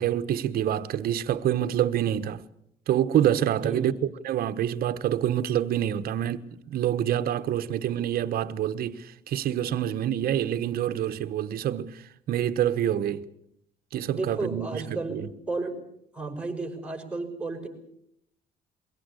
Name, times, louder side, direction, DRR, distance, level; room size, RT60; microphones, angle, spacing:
voice 1, 0.0-2.4 2.9-3.9 4.2-13.2 13.9-15.3, right 10 dB, 60° right, 1.3 m, -27 dB
voice 2, 3.6-4.1 7.6-7.8 14.1-15.8 16.1-17.7, right 3 dB, 5° right, 5.5 m, -33 dB
23.0 x 17.0 x 8.4 m
cardioid pair, 110°, 17 cm